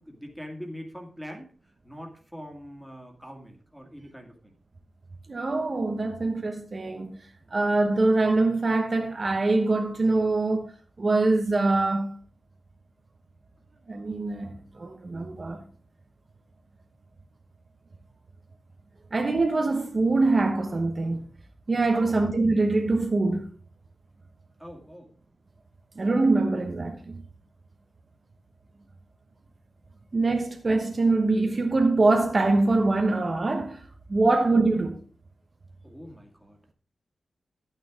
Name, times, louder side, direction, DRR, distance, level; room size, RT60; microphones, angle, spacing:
voice 1, 0.0-1.5 1.8-4.5 7.4-7.5 21.9-22.2 24.6-25.1 34.1-34.3 35.8-36.6, equal, ahead, 2.1 m, -43 dB
voice 2, 5.3-7.2 7.5-10.7 11.0-12.2 13.9-15.6 19.1-21.2 21.7-23.5 26.0-27.2 30.1-35.0, right 2 dB, 35° right, 1.0 m, -24 dB
12.0 x 9.0 x 3.7 m
wide cardioid pair, 150°, 0 cm